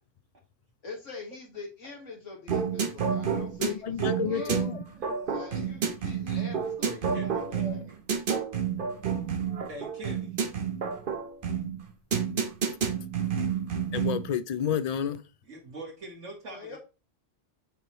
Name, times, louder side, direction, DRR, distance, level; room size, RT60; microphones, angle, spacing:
voice 1, 0.8-4.7 5.3-7.8 16.5-16.8, left 4 dB, 90° left, 2.1 m, -44 dB
sound 1, 2.5-14.3, right 7 dB, 50° right, 1.0 m, -30 dB
voice 2, 3.6-4.8 13.9-15.2, left 8 dB, 70° left, 0.3 m, -30 dB
voice 3, 4.2-5.3 6.8-8.0 9.7-10.4 12.3-12.4 15.5-16.8, right 1 dB, 85° right, 2.0 m, -42 dB
8.1 x 4.5 x 3.1 m
omnidirectional pair, 1.3 m